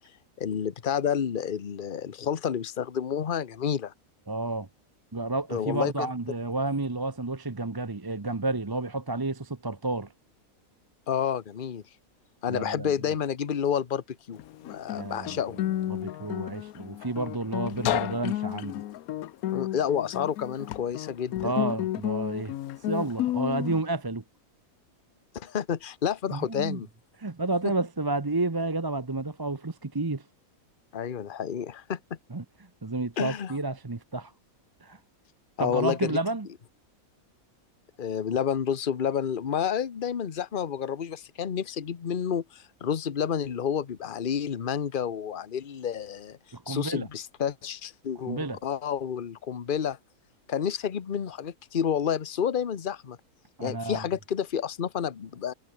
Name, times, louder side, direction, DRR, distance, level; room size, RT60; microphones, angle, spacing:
voice 1, 0.4-3.9 5.5-6.1 11.1-11.8 12.4-15.6 19.5-21.5 25.3-26.9 30.9-32.2 33.2-33.5 35.6-36.2 38.0-46.4 46.7-50.0 50.5-53.2 53.6-55.5, left 8 dB, 40° left, 1.1 m, -30 dB
voice 2, 4.3-4.7 5.1-10.1 12.5-12.9 14.9-15.4 15.9-18.8 21.4-22.5 22.9-24.2 26.3-26.8 27.2-30.2 32.3-32.4 32.8-34.3 34.8-35.0 35.6-36.5 46.5-47.1 48.3-48.6 53.6-54.0, right 2 dB, 20° right, 0.8 m, -30 dB
Guitar, 14.4-23.8, left 13 dB, 85° left, 1.1 m, -32 dB
omnidirectional pair, 1.5 m